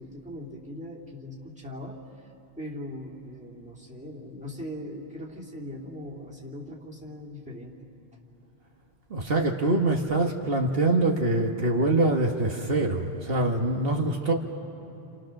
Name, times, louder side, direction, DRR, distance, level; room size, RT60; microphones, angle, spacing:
voice 1, 0.0-2.3 2.6-7.9, left 1 dB, 5° right, -4 dB, 2.7 m, -40 dB
voice 2, 9.1-14.3, right 2 dB, 65° right, 2 dB, 1.6 m, -24 dB
29.5 x 28.0 x 6.5 m, 2.8 s
omnidirectional pair, 1.0 m